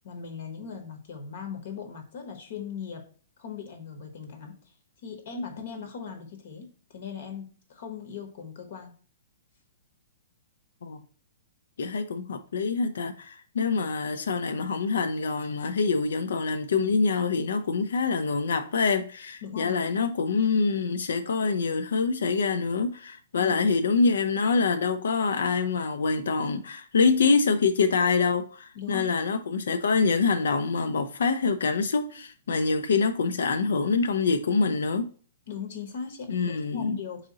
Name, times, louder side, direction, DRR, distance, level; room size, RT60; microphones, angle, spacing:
voice 1, 0.0-3.0 3.4-4.6 5.0-8.9 19.4-19.8 23.4-23.6 28.7-29.1 35.5-37.3, left 6 dB, 60° left, 0.8 m, -39 dB
voice 2, 11.8-35.1 36.3-37.0, left 4 dB, 85° left, 0.3 m, -25 dB
3.7 x 2.8 x 3.7 m
hypercardioid pair, 160°, 0 cm